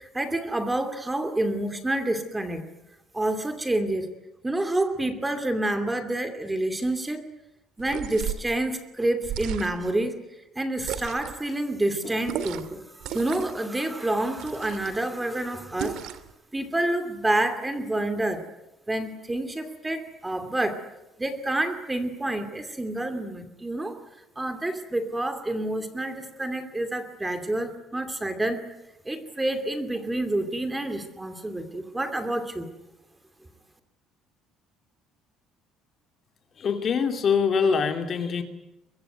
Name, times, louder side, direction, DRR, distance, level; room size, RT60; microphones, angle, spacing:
voice 1, 0.0-2.6 3.1-4.1 4.4-7.2 7.8-10.1 10.6-12.8 13.1-16.0 16.5-18.4 18.9-20.8 21.2-23.9 24.4-28.6 29.1-32.7, right 1 dB, 10° right, 7 dB, 2.6 m, -28 dB
sound 1, 7.8-8.5 9.2-9.9 10.8-11.4 12.3-12.7 13.0-13.6 14.4-15.0 15.8-16.3, right 9 dB, 60° right, 2.3 m, -34 dB
voice 2, 36.6-38.4, left 6 dB, 30° left, 6 dB, 2.5 m, -24 dB
23.5 x 23.5 x 9.2 m, 0.98 s
cardioid pair, 175°, 0 cm